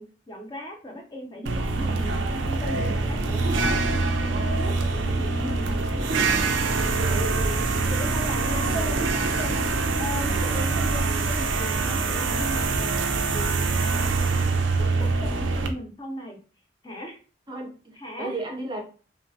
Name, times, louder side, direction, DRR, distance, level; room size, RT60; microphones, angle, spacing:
voice 1, 0.0-6.3 7.1-7.6 7.9-9.6 10.0-14.5 14.8-16.4 16.8-17.2 18.0-18.3, equal, 25° left, 1 dB, 0.6 m, -37 dB
sound 1, 1.5-15.7, right 3 dB, 85° right, 0.4 m, -24 dB
voice 2, 7.0-7.3 15.5-15.8 17.5-18.8, right 2 dB, 25° right, 1 dB, 0.5 m, -35 dB
3.1 x 2.1 x 2.6 m, 0.36 s
head